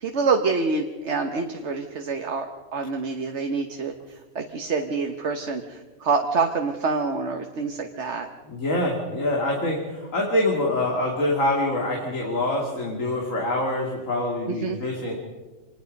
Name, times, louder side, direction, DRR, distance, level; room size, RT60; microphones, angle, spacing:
voice 1, 0.0-2.5 2.7-3.9 4.3-8.3 14.6-14.8, right 4 dB, 50° right, 4 dB, 1.4 m, -26 dB
voice 2, 8.5-15.2, left 1 dB, 60° left, 0 dB, 3.0 m, -25 dB
26.0 x 20.0 x 5.3 m, 1.3 s
omnidirectional pair, 1.6 m